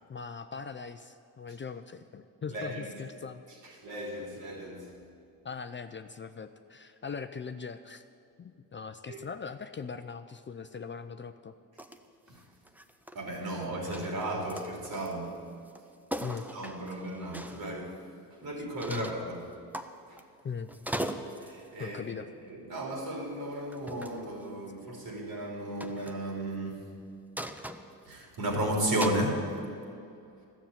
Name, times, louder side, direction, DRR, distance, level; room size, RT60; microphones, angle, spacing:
voice 1, 0.1-3.4 5.4-8.1 8.4-11.5 16.2-16.5 18.9-19.1 20.4-20.7 21.8-22.3, left 6 dB, 30° left, 9 dB, 0.5 m, -40 dB
voice 2, 2.5-2.9 3.6-5.0 9.1-9.2 12.3-12.5 13.1-15.5 16.5-18.0 18.3-19.4 20.1-20.2 21.4-22.1 22.4-27.0 28.0-29.6, right 1 dB, 60° right, 0 dB, 3.6 m, -34 dB
sound 1, 11.8-12.0 12.3-13.5 13.8-15.3 15.7-15.8 16.1-17.6 18.8-19.2 19.7-20.4 20.7-21.6 22.8-23.0 23.7-24.2 25.8-26.2 27.4-28.5 29.0-29.3, right 1 dB, 5° right, 0.8 m, -39 dB
12.5 x 7.3 x 9.0 m, 2.5 s
cardioid pair, 80°, 41 cm